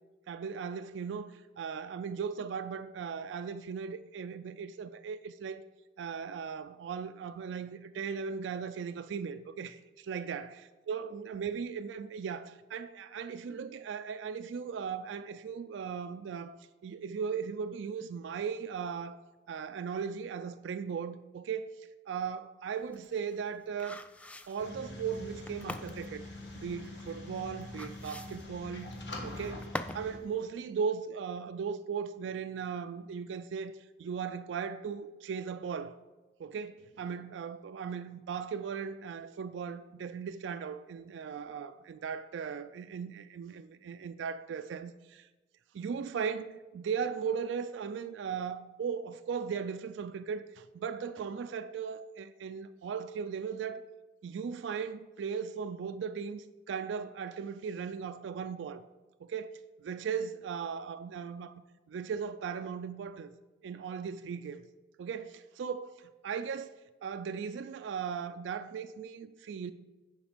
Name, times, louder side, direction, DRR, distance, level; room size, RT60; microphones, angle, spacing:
voice 1, 0.3-5.6 6.0-10.6 10.9-19.2 19.5-24.0 24.5-26.3 26.5-29.0 29.2-29.6 29.9-36.0 36.4-45.3 45.7-53.9 54.2-58.8 59.2-61.5 61.9-63.3 63.6-64.6 65.0-69.7, right 6 dB, 85° right, 0.3 m, -37 dB
sound 1, 22.7-30.1 30.4-30.5, left 1 dB, 5° left, 0.3 m, -44 dB
sound 2, 24.6-30.2, left 2 dB, 70° left, 1.4 m, -44 dB
10.0 x 5.1 x 5.0 m
head